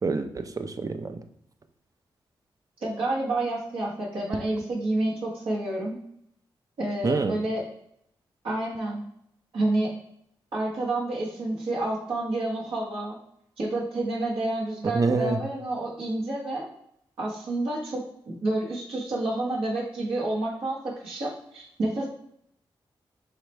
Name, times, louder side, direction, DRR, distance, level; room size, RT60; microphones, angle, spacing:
voice 1, 0.0-1.2 7.0-7.3 14.8-15.4, right 4 dB, 40° right, 9 dB, 0.5 m, -26 dB
voice 2, 2.8-6.0 6.8-7.7 8.4-9.0 9.5-9.9 10.5-13.2 13.6-16.7 17.2-20.8 21.0-22.1, right 2 dB, 75° right, -6 dB, 1.2 m, -29 dB
4.8 x 3.2 x 3.1 m, 0.72 s
cardioid pair, 60°, 9 cm